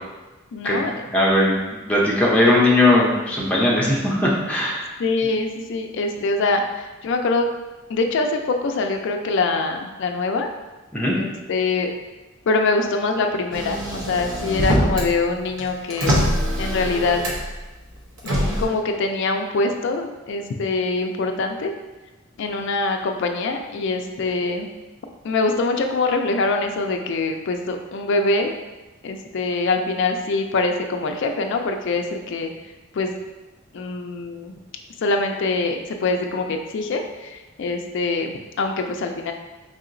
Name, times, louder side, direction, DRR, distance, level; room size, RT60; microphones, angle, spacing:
voice 1, 0.5-0.9 5.0-7.5 7.9-10.5 11.0-11.9 12.5-16.1 16.6-17.2 18.6-21.7 22.4-24.7 25.2-28.5 29.0-32.5 32.9-33.1 33.7-34.5 35.0-39.3, left 3 dB, 60° left, 4 dB, 0.4 m, -24 dB
voice 2, 1.1-4.8 10.9-11.2, left 1 dB, 5° left, -4 dB, 0.7 m, -19 dB
Motor vehicle (road), 13.5-15.1 15.5-17.6 18.2-18.6, equal, 70° right, 0.8 m, -23 dB
4.7 x 2.8 x 2.5 m, 1.1 s
head